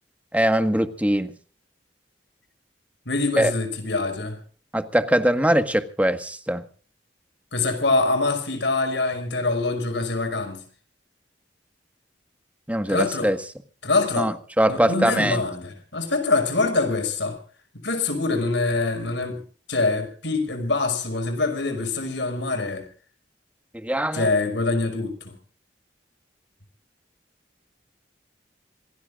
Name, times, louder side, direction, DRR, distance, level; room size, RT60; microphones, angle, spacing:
voice 1, 0.3-1.3 3.4-3.5 4.7-6.6 12.7-13.4 14.2-15.4 23.7-24.3, right 1 dB, 10° right, 1.6 m, -22 dB
voice 2, 3.1-4.4 7.5-10.6 12.9-13.3 13.8-14.3 14.7-17.4 17.7-19.4 19.7-22.8 24.1-25.4, left 3 dB, 75° left, 5.9 m, -24 dB
27.0 x 18.0 x 2.5 m
head